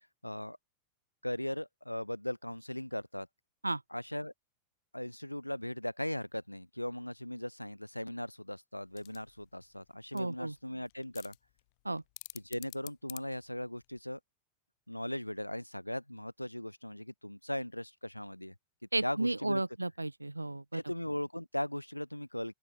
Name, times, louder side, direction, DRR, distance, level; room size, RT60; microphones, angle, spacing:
voice 1, 0.2-0.6 1.2-3.3 3.9-4.3 4.9-11.3 12.3-14.2 14.9-18.5 19.0-19.6 20.7-22.5, left 1 dB, 90° left, 1.2 m, -38 dB
sound 1, 8.8-14.0, left 26 dB, 50° left, 2.9 m, -51 dB
voice 2, 10.1-10.5 11.8-12.0 18.9-20.8, right 2 dB, 85° right, 1.7 m, -33 dB
open air
figure-of-eight pair, 90°, 0 cm